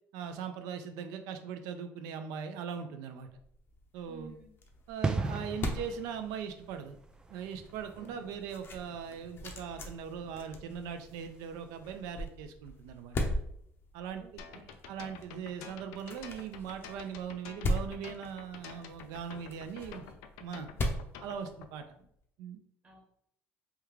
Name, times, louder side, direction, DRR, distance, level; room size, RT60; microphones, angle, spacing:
voice 1, 0.1-3.3 3.9-4.3 4.9-7.0 7.3-13.2 13.9-20.0 20.4-20.7 21.2-21.8 22.4-22.6, right 7 dB, 80° right, 7 dB, 0.4 m, -40 dB
sound 1, 3.3-22.1, left 1 dB, 40° left, 0.6 m, -40 dB
voice 2, 4.0-4.5 8.0-8.4 14.1-14.7 19.7-20.2 20.7-21.0 22.0-22.1 22.8-23.0, right 7 dB, 30° right, -2 dB, 0.9 m, -54 dB
sound 2, 5.0-11.5 11.8-12.0, right 3 dB, 15° right, 0.3 m, -39 dB
sound 3, 14.4-21.7, left 7 dB, 85° left, 0.3 m, -49 dB
3.5 x 2.3 x 3.1 m, 0.71 s
supercardioid pair, 95°, 6 cm